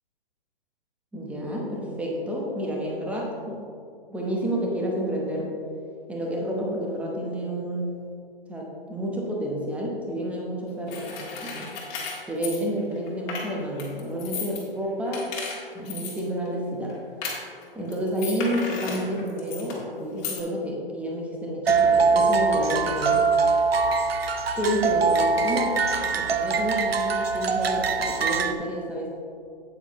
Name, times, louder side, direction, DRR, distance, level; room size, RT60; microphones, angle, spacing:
voice 1, 1.1-3.6 4.1-5.5 6.1-7.9 8.5-11.7 12.3-15.3 15.7-17.0 17.7-23.2 24.6-29.1, equal, 5° right, -2 dB, 0.9 m, -29 dB
sound 1, 10.9-13.5 13.8-14.6 15.0-16.2 16.4-16.5 16.9-17.0 17.2-17.6 17.9-19.8 20.2-20.4, left 5 dB, 25° left, 1.7 m, -35 dB
sound 2, 21.7-28.5, right 4 dB, 85° right, 0.7 m, -23 dB
8.6 x 8.5 x 3.1 m, 2.4 s
hypercardioid pair, 140°, 29 cm